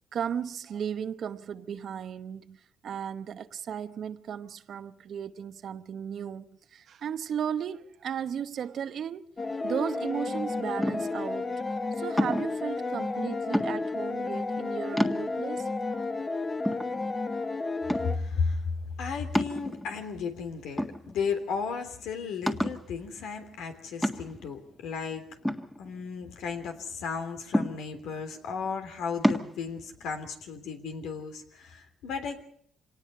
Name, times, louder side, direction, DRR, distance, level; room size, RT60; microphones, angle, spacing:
voice 1, 0.1-9.3 9.6-11.6 11.9-16.1, right 8 dB, 65° right, 1.0 m, -35 dB
sound 1, 9.4-18.2, left 3 dB, 30° left, 1.1 m, -32 dB
sound 2, 10.8-11.3 12.2-12.6 13.5-14.0 14.6-14.7 15.0-15.6 16.1-16.2 16.6-17.4 17.9-18.3 19.3-20.1 20.8-21.4 21.7-21.8 22.5-22.9 24.0-24.5 25.4-26.3 27.5-28.1 29.2-29.5, equal, 5° left, 1.8 m, -29 dB
voice 2, 18.0-18.7 19.0-25.3 25.8-32.4, left 5 dB, 85° left, 3.2 m, -34 dB
25.5 x 19.0 x 5.6 m
cardioid pair, 90°, 0 cm